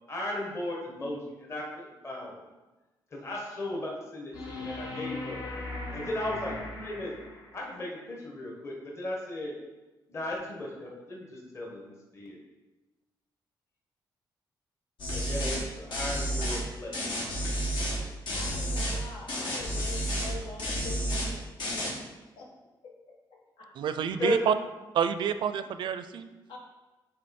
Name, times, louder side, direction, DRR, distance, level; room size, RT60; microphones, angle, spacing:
voice 1, 0.1-2.4 3.1-5.4 5.9-7.2 7.5-9.6 10.1-12.4 15.1-16.9 24.0-24.4, left 1 dB, 35° left, -3 dB, 1.4 m, -36 dB
sound 1, 4.3-7.7 10.3-10.4, left 2 dB, 55° left, 1.3 m, -38 dB
sound 2, 15.0-15.6 15.9-16.6 16.9-18.0 18.3-19.0 19.3-20.3 20.6-21.3 21.6-21.9, equal, 75° left, 1.8 m, -31 dB
voice 2, 18.3-21.5 21.7-22.1 22.4-22.5 22.8-23.2 23.6-24.2 26.5-26.6, left 3 dB, 90° left, -1 dB, 1.4 m, -44 dB
voice 3, 23.8-24.5 24.9-26.3, right 8 dB, 75° right, 11 dB, 0.4 m, -28 dB
7.7 x 3.9 x 4.3 m, 1.1 s
cardioid pair, 120°, 8 cm